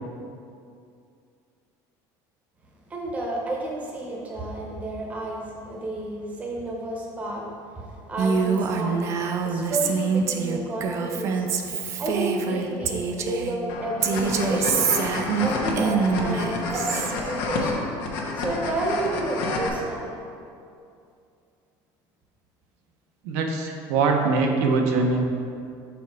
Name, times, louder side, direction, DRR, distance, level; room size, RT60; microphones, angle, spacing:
voice 1, 2.9-11.5 12.0-14.9 15.4-17.9 18.3-20.1 23.7-23.8, right 1 dB, 15° right, -2 dB, 0.7 m, -31 dB
Female speech woman speaking, 8.2-13.6 14.0-17.1, right 6 dB, 30° right, 0.3 m, -25 dB
sound 1, 13.7-19.7, left 3 dB, 85° left, 1.0 m, -30 dB
voice 2, 23.2-25.2, right 4 dB, 80° right, 2 dB, 0.7 m, -22 dB
5.4 x 4.6 x 4.7 m, 2.5 s
cardioid pair, 180°, 9 cm